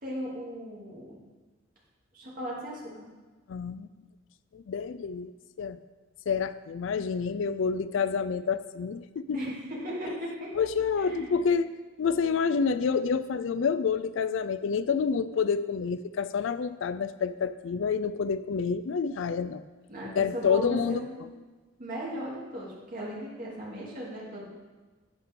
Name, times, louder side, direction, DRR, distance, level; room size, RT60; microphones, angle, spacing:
voice 1, 0.0-1.2 2.1-2.8 7.3-7.4 9.3-10.5 11.0-11.4 19.9-21.0 21.8-24.5, equal, 45° right, -5 dB, 2.8 m, -37 dB
voice 2, 3.5-3.9 4.5-5.3 5.6-5.8 6.3-9.4 10.5-11.7 12.0-19.6 20.2-21.0, left 6 dB, 65° left, 14 dB, 0.4 m, -28 dB
11.5 x 8.1 x 3.7 m, 1.3 s
head